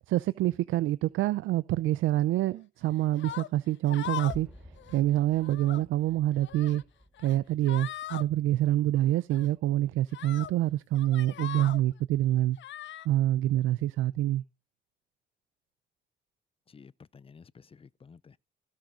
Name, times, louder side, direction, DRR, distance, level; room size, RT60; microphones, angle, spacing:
voice 1, 0.1-4.5 4.9-6.8 7.2-12.6 13.1-14.4, right 14 dB, 85° right, 0.6 m, -26 dB
sound 1, 3.2-3.5 3.9-4.5 4.8-5.0 5.4-5.8 6.3-6.8 7.2-7.4 7.6-8.2 9.3-9.5 10.1-10.5 10.9-11.8 12.6-13.1, left 12 dB, 70° left, 0.8 m, -39 dB
sound 2, 4.3-9.2 9.5-9.6, equal, 5° right, 3.5 m, -53 dB
voice 2, 16.7-18.4, left 5 dB, 30° left, 0.6 m, -53 dB
16.0 x 6.5 x 5.0 m
cardioid pair, 90°, 20 cm